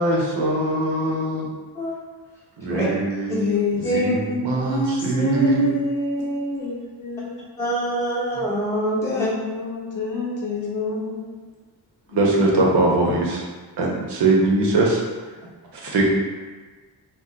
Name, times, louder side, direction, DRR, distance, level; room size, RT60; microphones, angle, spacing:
voice 1, 0.0-1.5 2.6-3.5 3.8-5.7 12.1-13.4 13.8-15.0 15.7-16.0, right 2 dB, 70° right, -2 dB, 0.7 m, -21 dB
voice 2, 3.4-7.5 9.1-11.4, left 2 dB, 45° left, -3 dB, 0.7 m, -27 dB
voice 3, 7.6-9.3 13.8-13.9, right 1 dB, 5° left, -9 dB, 0.7 m, -24 dB
2.4 x 2.1 x 3.8 m, 1.4 s
wide cardioid pair, 130°, 42 cm